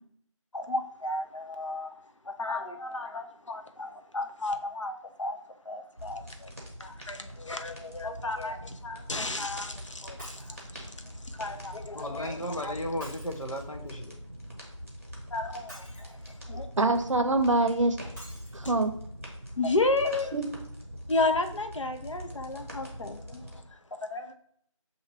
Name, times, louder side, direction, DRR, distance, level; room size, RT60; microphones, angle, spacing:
voice 1, 0.5-1.9 2.3-5.4 5.7-6.5 6.8-10.9 11.3-12.3 12.6-12.7 15.3-16.1 16.5-16.7 19.6-20.3 21.1-23.6 24.1-24.3, left 2 dB, 65° left, 6 dB, 0.6 m, -32 dB
sound 1, 6.0-23.6, equal, 25° right, 0.7 m, -43 dB
Shatter, 10.2-10.6 13.0-13.9 15.7-16.5 18.2-18.7 19.4-19.5 19.7-19.8, equal, 5° left, 1.1 m, -49 dB
voice 2, 11.9-14.2, equal, 90° left, 3 dB, 0.9 m, -35 dB
voice 3, 16.8-18.0 18.5-18.9 20.3-20.4, right 2 dB, 65° right, 8 dB, 0.6 m, -24 dB
6.5 x 2.7 x 2.9 m, 0.66 s
figure-of-eight pair, 175°, 17 cm